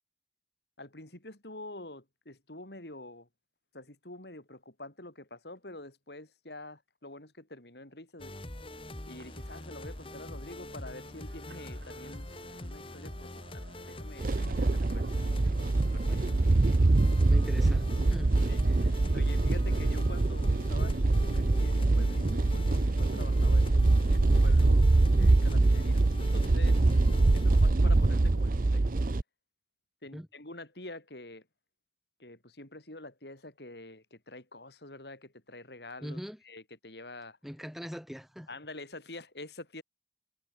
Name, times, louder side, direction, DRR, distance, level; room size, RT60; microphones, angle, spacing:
voice 1, 0.8-3.3 3.7-8.3 9.1-12.3 12.6-15.1 15.9-16.3 18.5-18.6 19.1-26.8 27.3-28.8 30.0-31.5 32.2-36.2 36.5-37.4 38.5-39.8, left 2 dB, 75° left, 5.5 m, -47 dB
sound 1, 8.2-27.7, left 1 dB, 30° left, 2.2 m, -43 dB
sound 2, 8.7-25.1, right 2 dB, 70° right, 5.0 m, -56 dB
sound 3, 14.2-29.2, right 2 dB, 50° right, 0.6 m, -24 dB
voice 2, 16.1-16.4 17.3-18.3 18.6-18.9 30.1-30.3 36.0-36.4 37.4-38.5, equal, ahead, 3.5 m, -42 dB
head